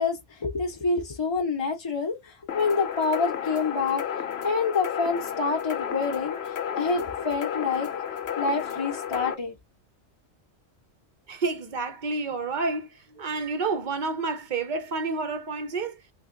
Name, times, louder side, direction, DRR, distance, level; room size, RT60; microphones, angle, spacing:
voice 1, 0.0-4.0 4.4-7.9 8.3-9.5, left 4 dB, 30° left, 0.5 m, -27 dB
sound 1, 2.5-9.3, left 8 dB, 60° left, 0.8 m, -32 dB
voice 2, 11.3-16.0, right 3 dB, 55° right, 0.6 m, -29 dB
3.3 x 2.2 x 3.7 m
omnidirectional pair, 1.3 m